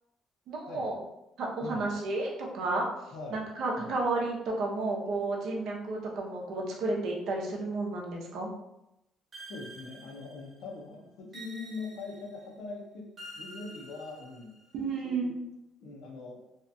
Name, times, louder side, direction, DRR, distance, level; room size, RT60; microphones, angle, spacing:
voice 1, 0.5-1.0 1.4-2.9 3.3-8.5 14.7-15.3, right 2 dB, 60° right, -1 dB, 0.6 m, -32 dB
voice 2, 3.1-3.5 3.8-4.0 9.5-13.1 13.3-14.5 15.0-15.3 15.8-16.4, left 3 dB, 75° left, 0 dB, 0.6 m, -42 dB
sound 1, 9.3-10.7 11.3-12.5 13.2-14.7, right 1 dB, 30° right, 0.9 m, -48 dB
2.8 x 2.3 x 2.6 m, 0.88 s
cardioid pair, 175°, 0 cm